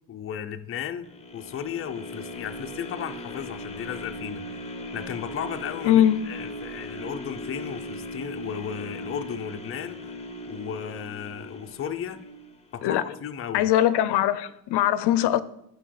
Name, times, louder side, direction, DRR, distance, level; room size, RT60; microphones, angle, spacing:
voice 1, 0.1-1.1 1.3-4.4 4.9-10.2 10.5-12.2 12.7-13.7, left 8 dB, 35° left, 0.6 m, -35 dB
sound 1, 1.0-13.1 13.6-13.7, equal, 15° left, 0.9 m, -38 dB
voice 2, 5.9-6.2 12.8-13.0 13.5-15.4, left 12 dB, 80° left, 0.6 m, -21 dB
12.5 x 5.5 x 5.8 m
cardioid pair, 165°, 40 cm